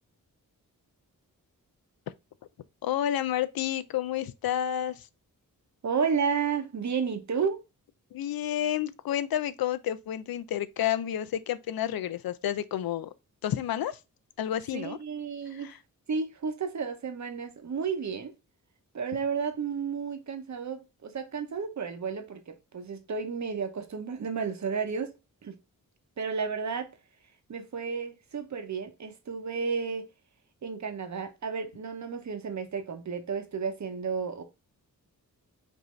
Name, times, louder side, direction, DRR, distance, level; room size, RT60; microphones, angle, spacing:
voice 1, 2.8-5.1 8.1-13.1 13.4-14.0 14.4-15.0 15.5-15.8, left 11 dB, 85° left, 0.5 m, -30 dB
voice 2, 5.8-7.6 14.7-15.7 16.1-18.3 18.9-25.1 25.4-25.6 26.2-26.9 27.5-30.1 30.6-34.4, right 6 dB, 55° right, 0.8 m, -32 dB
5.3 x 2.7 x 3.0 m
wide cardioid pair, 110°, 35 cm